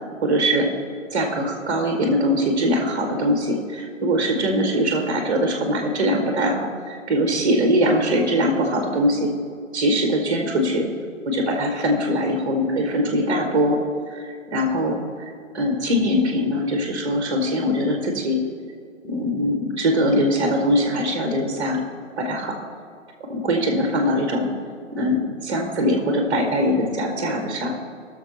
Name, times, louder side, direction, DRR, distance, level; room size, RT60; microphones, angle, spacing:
voice 1, 0.2-0.7 1.1-9.3 9.7-10.8 11.3-13.8 14.1-14.2 14.5-15.0 15.5-18.4 19.0-21.8 22.2-22.5 23.3-24.5 25.0-27.7, equal, 10° right, 2 dB, 1.0 m, -22 dB
19.0 x 6.5 x 3.0 m, 2.3 s
figure-of-eight pair, 140°, 40 cm